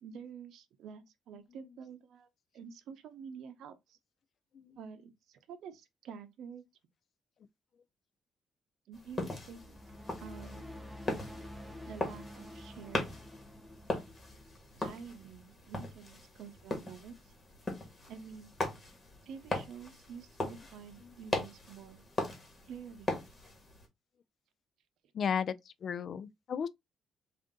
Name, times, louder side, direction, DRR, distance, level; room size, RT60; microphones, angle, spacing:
voice 1, 0.0-2.3 2.5-4.0 4.8-6.6 8.9-9.8 10.2-10.6 11.9-13.1 13.9-14.0 14.7-17.3 18.1-18.5 19.2-22.0 22.7-23.1, right 7 dB, 80° right, 0.6 m, -48 dB
sound 1, 8.9-23.8, left 2 dB, 30° left, 1.5 m, -40 dB
sound 2, 9.3-15.8, left 1 dB, 5° right, 0.8 m, -49 dB
voice 2, 25.1-26.7, left 7 dB, 55° left, 0.3 m, -35 dB
3.6 x 2.5 x 3.6 m
cardioid pair, 90°, 0 cm